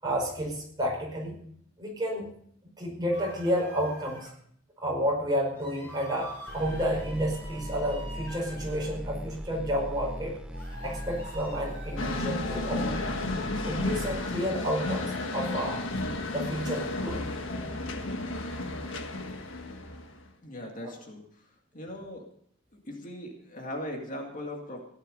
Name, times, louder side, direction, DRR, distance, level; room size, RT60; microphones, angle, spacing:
voice 1, 0.0-1.4 1.8-2.3 2.8-4.3 4.8-10.4 10.8-13.0 13.6-15.8 16.3-17.2 20.8-20.9, equal, 20° right, -2 dB, 5.2 m, -31 dB
sound 1, 3.1-4.3 5.5-8.9 10.5-12.6, equal, 10° left, 6.7 m, -45 dB
sound 2, 6.5-14.3, equal, 5° right, 0.6 m, -39 dB
sound 3, 12.0-20.3, left 2 dB, 75° left, 1.6 m, -33 dB
voice 2, 20.4-21.2 21.7-22.2 22.9-24.8, left 1 dB, 40° left, 1 dB, 2.2 m, -39 dB
16.0 x 11.0 x 5.4 m, 0.65 s
head